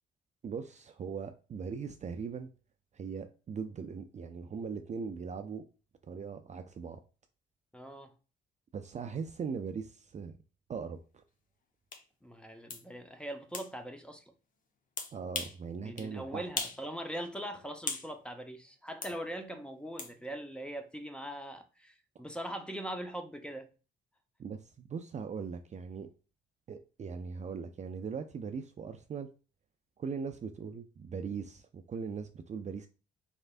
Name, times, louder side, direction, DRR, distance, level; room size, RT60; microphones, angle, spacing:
voice 1, 0.4-2.5 2.9-5.6 6.0-7.0 8.7-10.4 10.7-11.2 15.1-16.5 24.4-26.1 26.7-29.3 30.0-32.9, right 6 dB, 35° right, 0.4 m, -40 dB
voice 2, 7.7-8.1 12.2-14.2 15.8-23.7, right 1 dB, 5° left, 0.7 m, -41 dB
sound 1, 11.9-12.0 12.7-12.8 13.5-13.7 15.0-15.6 16.0-16.1 16.6-16.8 17.2-18.1 19.0-19.2 20.0-20.1, left 4 dB, 40° left, 0.8 m, -38 dB
4.4 x 3.3 x 2.4 m
cardioid pair, 90°, 20 cm